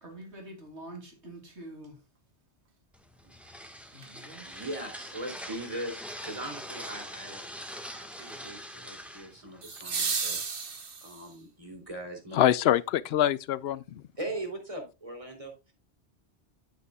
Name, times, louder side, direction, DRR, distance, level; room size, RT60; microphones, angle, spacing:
voice 1, 0.0-1.9 3.9-4.7, right 1 dB, 85° right, 3.0 m, -46 dB
sound 1, 2.9-10.4, equal, ahead, 1.3 m, -43 dB
voice 2, 4.0-7.4 7.7-10.4 11.0-12.4 14.2-15.7, right 1 dB, 30° right, 2.9 m, -40 dB
sound 2, 4.0-4.1 9.6-11.4 13.6-13.7, right 5 dB, 55° right, 1.4 m, -33 dB
voice 3, 12.3-14.0, left 11 dB, 70° left, 0.8 m, -25 dB
9.5 x 8.9 x 2.3 m
omnidirectional pair, 1.1 m